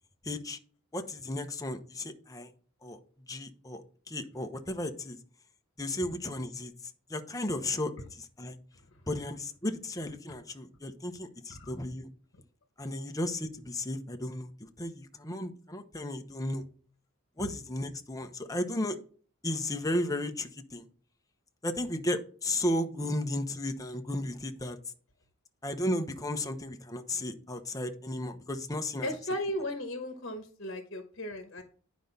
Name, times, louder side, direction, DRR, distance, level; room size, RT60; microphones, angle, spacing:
voice 1, 0.2-0.6 0.9-2.5 2.8-3.0 3.3-5.2 5.8-6.7 7.1-8.6 9.1-12.1 12.8-14.5 14.8-16.6 17.4-19.0 19.4-20.9 21.6-24.8 25.6-29.1, left 1 dB, 15° left, 5 dB, 0.9 m, -34 dB
voice 2, 29.0-31.6, left 1 dB, 55° left, 6 dB, 1.2 m, -36 dB
10.0 x 5.2 x 4.2 m, 0.43 s
head